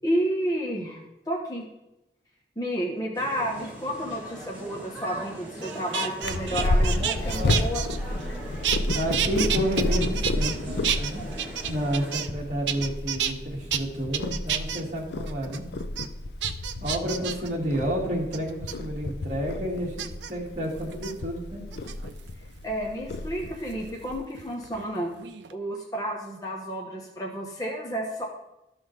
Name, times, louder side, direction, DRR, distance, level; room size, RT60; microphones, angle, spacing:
voice 1, 0.0-1.0 1.3-1.7 2.6-7.8 22.6-25.1 25.5-28.3, equal, 20° left, -1 dB, 0.9 m, -31 dB
sound 1, 3.1-12.1, right 1 dB, 10° right, 1.8 m, -41 dB
sound 2, 5.6-8.4 8.6-10.6 10.8-12.4 12.7-13.3 13.7-13.8 14.1-14.8 15.3-15.6 16.0-16.1 16.4-17.5 18.3-18.7 20.0-20.3 20.9-21.1 21.7-22.3 23.7-24.9 25.2-25.5, right 9 dB, 85° right, 0.5 m, -30 dB
Purr, 6.2-24.2, left 2 dB, 70° left, 0.5 m, -31 dB
voice 2, 7.3-7.6 8.9-11.2 11.6-15.6 16.8-21.6, equal, 45° right, -2 dB, 1.8 m, -30 dB
13.0 x 5.5 x 3.2 m, 0.92 s
head